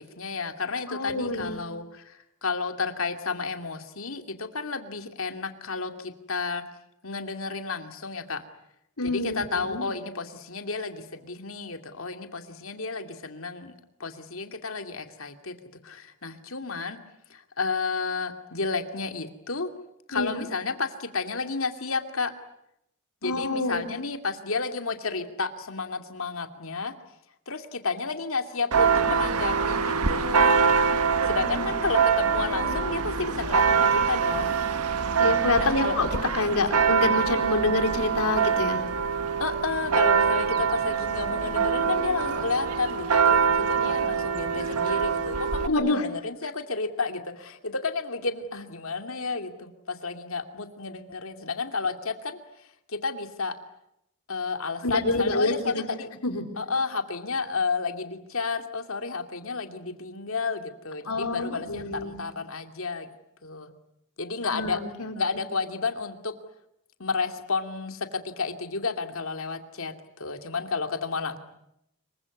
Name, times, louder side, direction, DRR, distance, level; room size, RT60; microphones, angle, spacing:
voice 1, 0.0-6.6 7.0-8.5 9.0-13.7 14.0-15.5 15.8-17.0 17.3-19.7 20.1-22.3 23.2-26.9 27.5-30.5 31.2-34.5 35.6-35.9 39.4-53.5 54.3-56.1 56.6-63.1 63.4-63.7 64.2-64.8 65.2-66.3 67.0-71.4, left 4 dB, 65° left, 7 dB, 2.6 m, -31 dB
voice 2, 0.9-1.7 9.0-9.8 20.1-20.4 23.2-23.9 31.4-31.7 32.5-32.7 35.2-36.1 36.3-38.8 45.7-46.0 54.8-55.8 56.2-56.4 61.1-62.2 64.4-65.4, left 2 dB, 80° left, 6 dB, 4.3 m, -27 dB
Church bell, 28.7-45.7, right 6 dB, 90° right, 1.5 m, -24 dB
26.0 x 23.5 x 9.7 m, 0.80 s
head